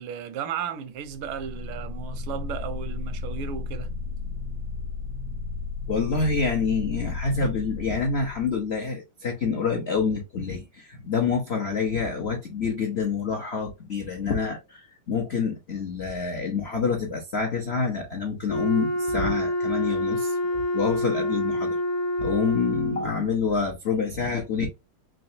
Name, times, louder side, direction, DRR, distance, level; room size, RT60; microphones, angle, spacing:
voice 1, 0.0-3.9, right 8 dB, 85° right, 1.5 m, -34 dB
sound 1, 1.1-8.7, left 4 dB, 65° right, 0.8 m, -34 dB
voice 2, 5.9-21.8 22.2-24.7, left 5 dB, 80° left, 0.5 m, -27 dB
Wind instrument woodwind instrument, 18.5-23.2, left 1 dB, 55° left, 1.2 m, -27 dB
3.9 x 3.2 x 2.7 m
omnidirectional pair, 2.3 m